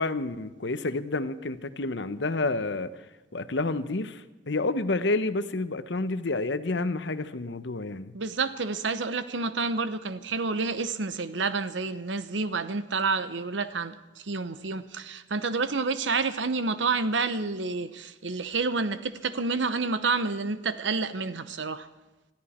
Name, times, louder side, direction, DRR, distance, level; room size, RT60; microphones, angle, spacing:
voice 1, 0.0-3.0 3.3-8.1, left 2 dB, 70° left, 0.9 m, -29 dB
voice 2, 8.1-21.9, right 4 dB, 85° right, 1.0 m, -29 dB
21.0 x 13.5 x 4.4 m
head